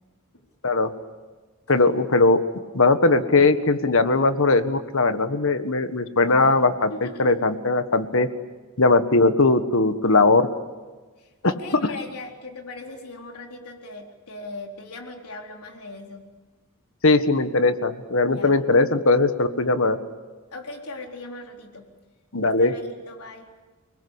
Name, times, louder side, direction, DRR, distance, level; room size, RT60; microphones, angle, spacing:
voice 1, 1.7-2.4 2.7-6.9 7.2-8.3 8.8-10.5 11.7-11.8 17.0-20.0 22.3-22.7, left 3 dB, 60° left, 10 dB, 1.6 m, -19 dB
voice 2, 6.2-6.6 6.9-7.3 11.2-16.2 18.2-18.6 20.5-21.9 22.4-23.4, left 2 dB, 80° left, 2 dB, 4.1 m, -39 dB
30.0 x 20.5 x 8.4 m, 1.3 s
head